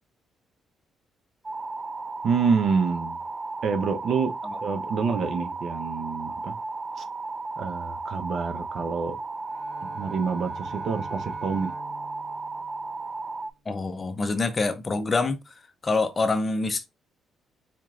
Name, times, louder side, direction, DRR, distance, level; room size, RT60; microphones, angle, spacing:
sound 1, 1.4-13.5, right 3 dB, 30° right, 0.3 m, -35 dB
voice 1, 2.2-3.2 3.6-4.3 4.6-6.6 7.0-7.1 7.6-9.2 9.8-11.7, right 5 dB, 65° right, 0.7 m, -27 dB
Bowed string instrument, 9.4-13.5, equal, 15° left, 1.7 m, -48 dB
voice 2, 13.7-15.5 15.8-16.9, left 3 dB, 30° left, 0.7 m, -26 dB
4.3 x 2.9 x 2.5 m
cardioid pair, 90°, 0 cm